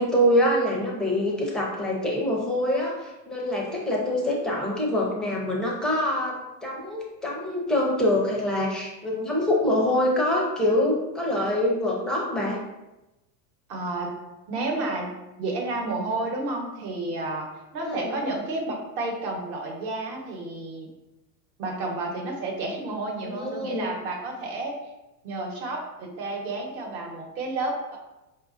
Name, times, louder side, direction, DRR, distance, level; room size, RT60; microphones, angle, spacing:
voice 1, 0.0-12.6 17.8-18.1 23.2-23.9, left 1 dB, ahead, -4 dB, 0.4 m, -25 dB
voice 2, 13.7-14.1 14.5-15.1 15.4-17.5 17.7-20.9 21.6-24.8 25.2-28.0, right 2 dB, 55° right, 0 dB, 1.1 m, -31 dB
4.7 x 2.5 x 2.5 m, 0.99 s
supercardioid pair, 120°, 49 cm